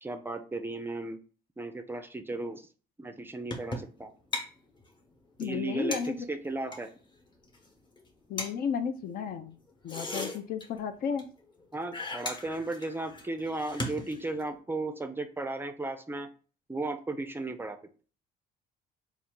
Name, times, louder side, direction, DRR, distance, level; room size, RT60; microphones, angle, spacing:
voice 1, 0.0-1.2 1.6-2.6 3.0-4.1 5.4-6.9 11.7-16.3 16.7-17.8, right 2 dB, 15° right, 8 dB, 0.4 m, -35 dB
sound 1, 3.5-4.0 4.3-4.5 4.8-4.9 5.1-5.2 5.4-5.5 5.9-6.9 7.4-7.7 8.0-8.1 8.4-8.5 9.7-10.9 11.2-11.6 11.9-14.5, left 2 dB, 25° left, 1.0 m, -37 dB
voice 2, 5.4-6.2 8.3-9.6 9.8-11.3, left 7 dB, 60° left, 9 dB, 0.6 m, -33 dB
4.1 x 2.4 x 3.7 m, 0.39 s
cardioid pair, 110°, 17 cm